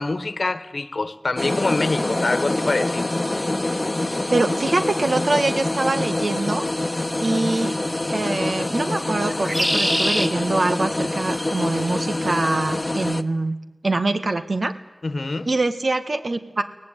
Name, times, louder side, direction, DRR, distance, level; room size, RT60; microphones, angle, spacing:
voice 1, 0.0-3.1 15.0-15.5, left 3 dB, 70° left, 1.3 m, -25 dB
sound 1, 1.4-13.2, left 2 dB, 35° left, 1.1 m, -25 dB
voice 2, 4.3-6.7 7.2-7.7 8.0-13.6 13.8-14.7 15.5-16.6, right 2 dB, 70° right, 1.6 m, -24 dB
sound 2, 4.6-4.7 7.1-7.5 9.3-10.3 11.2-11.7, equal, 10° right, 2.0 m, -25 dB
23.5 x 18.0 x 9.2 m
wide cardioid pair, 55°, 0 cm